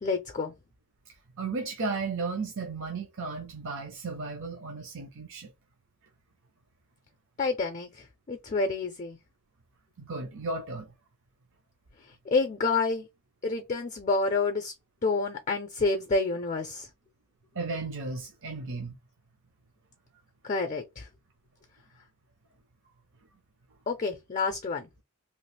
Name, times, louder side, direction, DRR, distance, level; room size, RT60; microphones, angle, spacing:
voice 1, 0.0-0.5 7.4-9.2 12.3-13.1 13.4-14.7 15.0-16.9 20.4-21.1 23.9-24.9, left 3 dB, 35° left, 0.5 m, -28 dB
voice 2, 1.4-5.5 10.0-10.9 17.5-19.0, right 3 dB, 60° right, 0.7 m, -34 dB
3.0 x 2.4 x 3.2 m
head